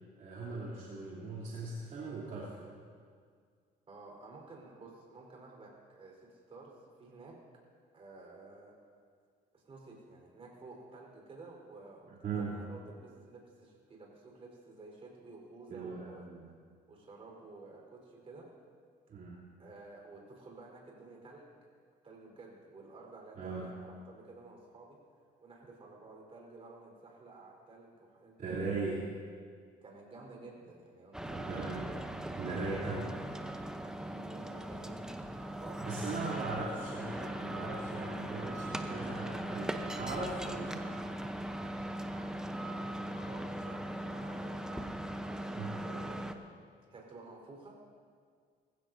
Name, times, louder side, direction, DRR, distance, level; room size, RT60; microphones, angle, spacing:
voice 1, 0.2-2.7 12.2-12.6 15.7-16.5 19.1-19.4 23.4-23.7 28.4-29.1 31.2-31.8 32.4-33.1 35.8-40.9 45.5-45.9, right 3 dB, 50° right, -7 dB, 3.1 m, -39 dB
voice 2, 3.9-7.3 7.9-8.7 9.5-16.3 16.9-18.5 19.6-21.6 22.0-25.0 25.4-28.9 29.8-31.7 34.0-35.0 35.5-36.7 42.6-44.9 45.3-46.4 46.9-47.8, right 3 dB, 35° right, -1 dB, 4.2 m, -52 dB
sound 1, 31.1-46.3, right 1 dB, 5° right, 0.8 m, -39 dB
20.5 x 15.5 x 2.7 m, 2.1 s
cardioid pair, 110°, 17 cm